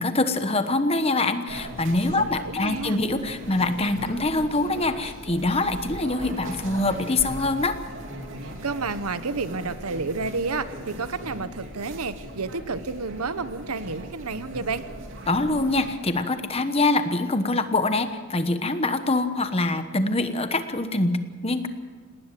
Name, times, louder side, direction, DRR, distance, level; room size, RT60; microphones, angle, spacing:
voice 1, 0.0-7.8 15.3-21.7, left 2 dB, 25° left, 9 dB, 1.1 m, -24 dB
sound 1, 1.5-16.0, right 1 dB, 60° right, 3.2 m, -39 dB
voice 2, 2.3-3.0 8.6-14.8, right 4 dB, 90° right, 13 dB, 1.0 m, -30 dB
19.5 x 19.0 x 7.6 m, 1.5 s
head